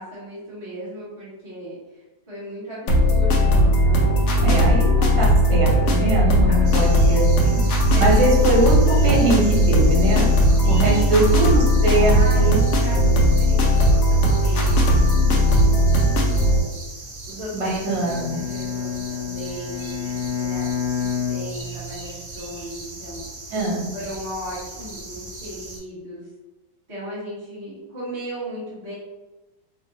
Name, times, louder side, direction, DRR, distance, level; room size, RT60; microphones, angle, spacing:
voice 1, 0.0-4.9 6.1-6.7 7.9-8.2 10.6-11.5 12.1-16.7 17.2-23.2 23.9-26.3 26.9-28.9, equal, 20° right, -10 dB, 1.0 m, -36 dB
sound 1, 2.9-16.6, equal, 70° left, 1.2 m, -17 dB
voice 2, 4.4-7.6 8.0-10.3 10.7-12.6 17.5-18.4 23.5-23.9, right 2 dB, 85° right, -3 dB, 1.7 m, -22 dB
sound 2, 6.6-25.8, right 2 dB, 60° right, 1.1 m, -39 dB
Bowed string instrument, 17.8-22.2, left 7 dB, 35° left, 0.6 m, -29 dB
4.7 x 2.3 x 2.7 m, 1.1 s
omnidirectional pair, 2.0 m